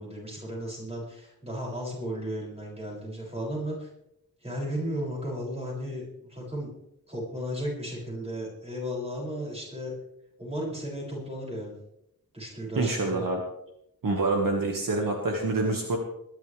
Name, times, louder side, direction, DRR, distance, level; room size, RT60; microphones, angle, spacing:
voice 1, 0.0-3.9 4.4-6.0 6.3-6.7 7.1-9.9 10.4-11.7 12.3-13.3, equal, 15° right, -4 dB, 7.1 m, -34 dB
voice 2, 12.8-13.4 14.0-16.0, right 2 dB, 60° right, 1 dB, 2.1 m, -26 dB
22.0 x 12.0 x 3.5 m, 0.82 s
wide cardioid pair, 160°, 37 cm